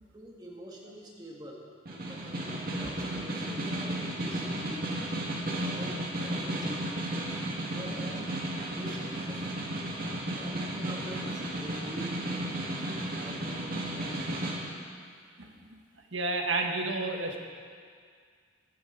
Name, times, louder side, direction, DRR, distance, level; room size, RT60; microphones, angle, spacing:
voice 1, 0.1-1.6 1.9-5.1 5.4-8.3 8.7-9.5 10.4-12.4 12.8-14.4, equal, 20° right, -2 dB, 1.8 m, -46 dB
Snare drum, 1.9-14.6, right 1 dB, 50° right, 1.9 m, -34 dB
voice 2, 15.4-15.8 16.1-17.4, right 3 dB, 90° right, 2 dB, 1.5 m, -31 dB
14.5 x 13.0 x 4.0 m, 2.1 s
head